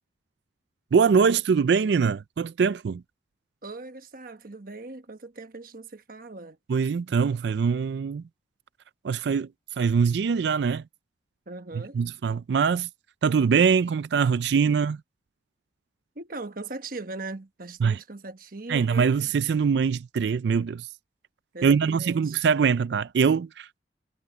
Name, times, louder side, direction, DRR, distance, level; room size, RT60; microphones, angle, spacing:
voice 1, 0.9-3.0 6.7-8.2 9.0-9.5 9.8-10.8 11.9-12.9 13.2-15.0 17.8-18.0 18.7-20.9 21.6-23.8, right 6 dB, 70° right, 0.4 m, -23 dB
voice 2, 3.6-6.6 11.5-12.0 14.7-14.8 16.1-19.1 21.5-22.4, right 2 dB, 50° right, 1.2 m, -39 dB
head